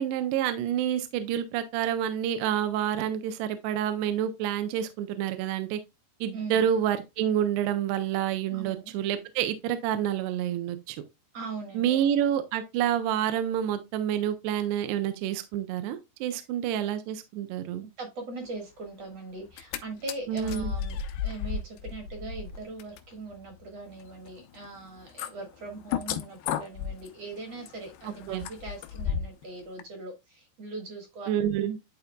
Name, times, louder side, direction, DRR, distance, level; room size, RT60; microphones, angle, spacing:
voice 1, 0.0-5.8 6.2-11.0 11.8-17.8 20.3-20.7 28.3-28.4 31.3-31.8, right 10 dB, 80° right, 2.6 m, -28 dB
voice 2, 6.3-6.7 8.5-8.9 11.3-12.1 16.3-16.5 18.0-31.3, right 3 dB, 55° right, 1.8 m, -40 dB
sound 1, 19.4-19.8 20.1-29.4 29.8-29.9, left 8 dB, 80° left, 2.3 m, -35 dB
11.5 x 4.0 x 2.2 m
omnidirectional pair, 5.0 m